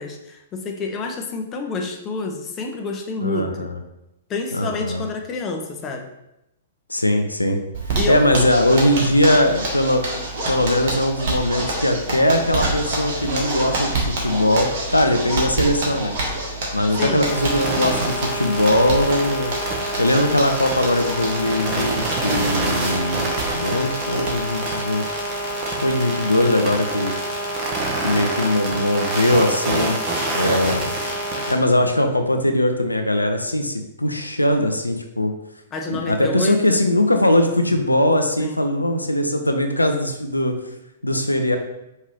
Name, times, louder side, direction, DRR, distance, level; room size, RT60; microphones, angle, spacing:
voice 1, 0.0-3.7 4.3-6.1 8.0-8.2 17.0-17.2 35.7-36.8 38.4-38.6, left 3 dB, 20° left, 2 dB, 0.5 m, -28 dB
voice 2, 3.2-3.8 4.5-5.0 6.9-7.6 8.1-10.0 10.5-14.0 14.2-16.1 16.7-19.5 20.0-25.0 25.7-27.1 28.0-30.0 30.3-30.9 31.5-35.3 35.9-40.6 41.0-41.6, left 1 dB, 85° left, 5 dB, 0.4 m, -20 dB
Zipper (clothing), 7.7-25.9 26.2-26.3 26.7-26.8 27.1-27.5, right 2 dB, 45° right, 1.1 m, -28 dB
sound 1, 17.3-31.5, right 2 dB, 25° right, 0.9 m, -26 dB
5.1 x 2.7 x 3.2 m, 0.87 s
figure-of-eight pair, 110°, 0 cm